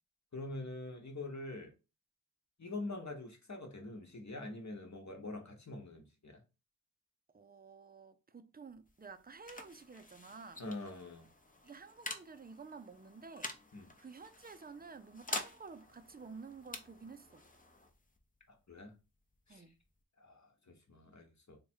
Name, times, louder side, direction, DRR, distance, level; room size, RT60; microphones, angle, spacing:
voice 1, 0.3-1.7 2.6-6.4 10.6-11.3 13.7-13.9 18.5-19.0 19.5-19.6 20.2-21.6, left 2 dB, 50° left, 1.0 m, -45 dB
voice 2, 7.3-10.6 11.6-13.5 14.0-17.4 19.5-19.8, right 5 dB, 25° right, 0.4 m, -51 dB
sound 1, 8.7-20.0, left 2 dB, 20° left, 0.6 m, -48 dB
3.5 x 2.3 x 4.3 m
wide cardioid pair, 45°, 38 cm